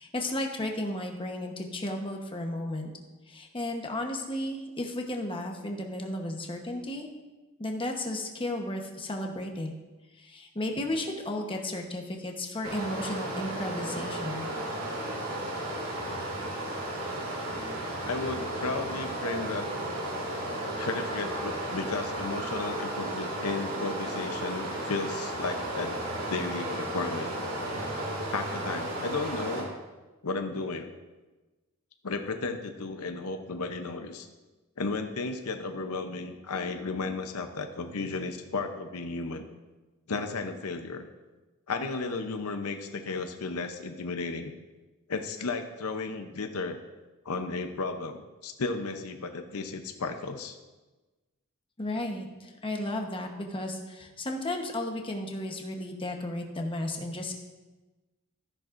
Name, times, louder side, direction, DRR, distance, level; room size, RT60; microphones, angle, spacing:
voice 1, 0.0-2.9 3.3-7.1 7.6-9.7 10.2-14.5 51.8-57.4, left 1 dB, 25° left, 2 dB, 1.1 m, -34 dB
Stream, 12.6-29.6, right 1 dB, 60° right, 3.2 m, -34 dB
voice 2, 18.0-19.7 20.8-26.0 26.3-27.3 28.3-29.7 30.2-30.9 32.0-34.3 34.8-39.4 40.1-41.1 41.7-44.5 45.1-46.8 47.2-50.6, left 3 dB, 75° left, 6 dB, 0.7 m, -34 dB
13.5 x 10.5 x 2.6 m, 1.2 s
head